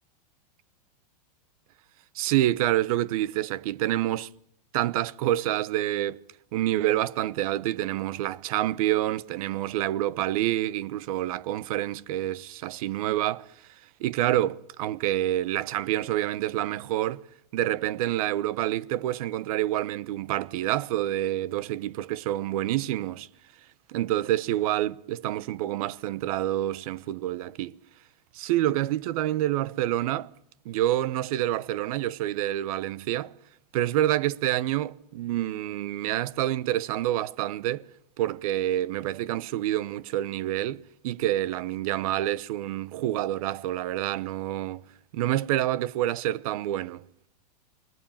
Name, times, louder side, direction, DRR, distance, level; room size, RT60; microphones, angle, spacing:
voice 1, 2.1-4.3 4.7-6.2 6.5-13.5 14.0-17.2 17.5-23.3 23.9-27.8 28.3-30.3 30.6-33.3 33.7-37.9 38.2-44.8 45.1-47.0, right 13 dB, 60° right, 1.0 m, -27 dB
29.0 x 23.0 x 7.4 m
supercardioid pair, 140°, 21 cm